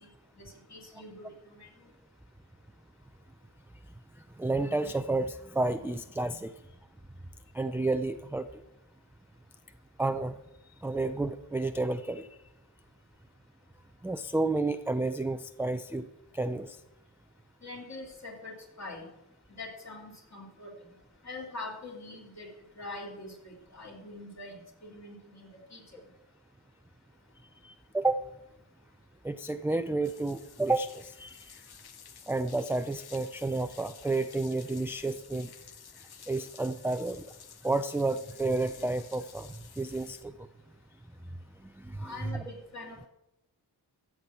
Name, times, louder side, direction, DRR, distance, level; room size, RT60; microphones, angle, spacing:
voice 1, 0.4-1.7 17.6-19.1 19.6-20.7 21.2-25.8 42.0-43.0, left 2 dB, 40° left, -1 dB, 3.0 m, -44 dB
voice 2, 4.4-6.5 7.5-8.6 10.0-10.4 10.8-12.3 14.0-16.1 16.3-16.8 27.6-28.3 29.2-31.4 32.3-35.5 36.3-37.3 37.6-40.5 41.6-42.4, right 2 dB, 5° right, 9 dB, 0.3 m, -31 dB
sound 1, 30.0-40.2, left 7 dB, 60° left, 0.9 m, -52 dB
14.0 x 6.0 x 8.3 m, 0.92 s
wide cardioid pair, 125°, 43 cm